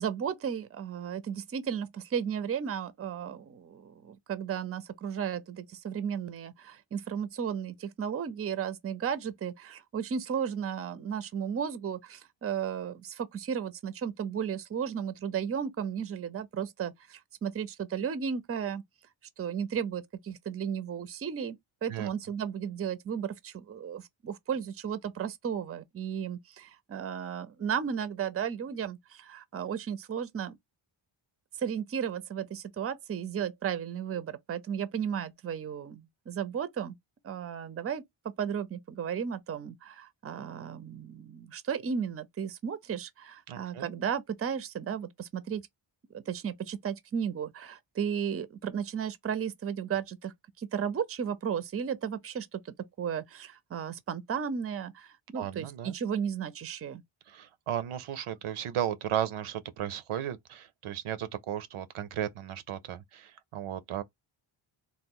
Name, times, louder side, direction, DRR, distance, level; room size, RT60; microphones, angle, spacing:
voice 1, 0.0-18.8 19.4-21.6 21.8-30.6 31.6-37.0 37.2-45.6 46.1-57.0, right 8 dB, 30° right, 0.5 m, -34 dB
voice 2, 43.5-43.9 55.3-55.9 57.3-64.0, right 10 dB, 80° right, 0.6 m, -35 dB
3.0 x 2.1 x 3.6 m
cardioid pair, 65°, 50 cm